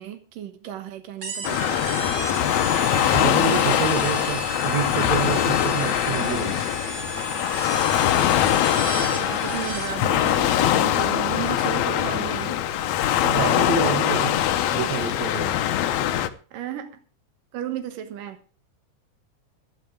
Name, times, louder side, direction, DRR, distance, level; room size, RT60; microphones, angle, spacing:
voice 1, 0.0-1.8 2.2-2.6 8.0-8.7 9.3-12.6 16.5-17.0 17.5-18.6, right 10 dB, 90° right, 2.9 m, -34 dB
sound 1, 1.2-10.1, right 4 dB, 35° right, 2.2 m, -34 dB
Waves surf, 1.4-16.3, left 12 dB, 70° left, 2.0 m, -22 dB
voice 2, 3.0-6.6 9.0-9.3 13.2-14.4 14.7-15.6, right 8 dB, 60° right, 2.9 m, -28 dB
14.0 x 11.0 x 4.6 m
omnidirectional pair, 3.7 m